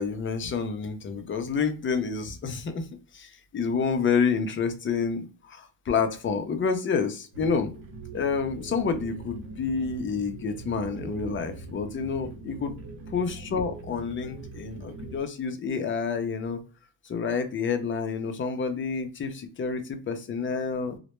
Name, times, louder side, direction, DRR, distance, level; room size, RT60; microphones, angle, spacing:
voice 1, 0.0-2.9 3.1-7.7 8.1-12.7 13.1-16.6 17.1-21.0, left 5 dB, 30° left, 7 dB, 0.4 m, -29 dB
sound 1, 7.3-15.2, right 3 dB, 90° right, 0.8 m, -42 dB
2.1 x 2.0 x 2.9 m, 0.35 s
cardioid pair, 115°, 42 cm